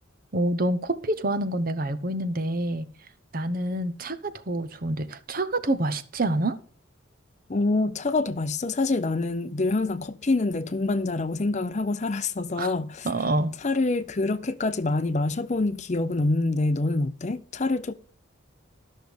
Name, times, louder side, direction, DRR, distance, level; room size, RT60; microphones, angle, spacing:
voice 1, 0.3-2.9 3.3-6.6 12.6-12.7 13.0-13.5, right 1 dB, 45° right, 0.9 m, -27 dB
voice 2, 7.5-13.1 13.6-17.9, left 2 dB, 35° left, 0.5 m, -26 dB
12.5 x 6.4 x 5.1 m
head